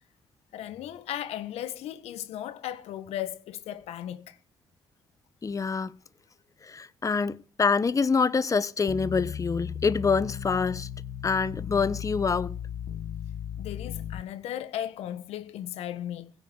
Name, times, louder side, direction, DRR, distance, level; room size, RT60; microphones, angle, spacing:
voice 1, 0.5-4.4 13.6-16.3, left 11 dB, 75° left, 1.6 m, -36 dB
voice 2, 5.4-5.9 6.6-10.9 11.2-12.6, left 5 dB, 30° left, 1.0 m, -26 dB
sound 1, 8.9-14.2, left 9 dB, 60° left, 1.1 m, -36 dB
16.0 x 7.7 x 6.5 m
supercardioid pair, 60°, 11 cm